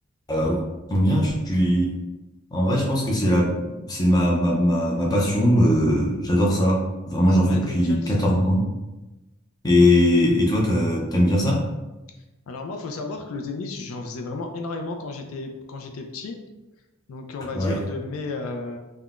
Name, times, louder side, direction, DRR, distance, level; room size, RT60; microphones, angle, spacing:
voice 1, 0.9-2.0 2.5-8.6 9.6-11.6 17.5-17.8, equal, 20° left, -3 dB, 0.5 m, -20 dB
voice 2, 7.2-8.3 12.5-16.4 17.1-18.8, left 3 dB, 80° left, 3 dB, 0.4 m, -33 dB
3.5 x 2.2 x 2.4 m, 1.1 s
head